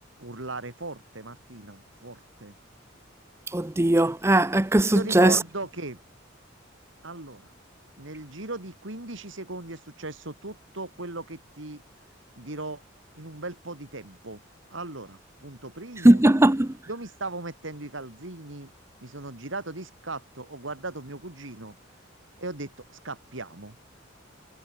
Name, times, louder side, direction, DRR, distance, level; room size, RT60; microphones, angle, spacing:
voice 1, 0.2-2.6 4.9-6.0 7.0-7.5 8.0-11.8 12.4-12.8 13.2-14.4 14.7-16.2 16.9-18.7 19.0-21.8 22.4-23.8, right 2 dB, 70° right, 2.7 m, -38 dB
voice 2, 3.5-5.4 16.0-16.7, right 1 dB, 15° right, 0.6 m, -19 dB
head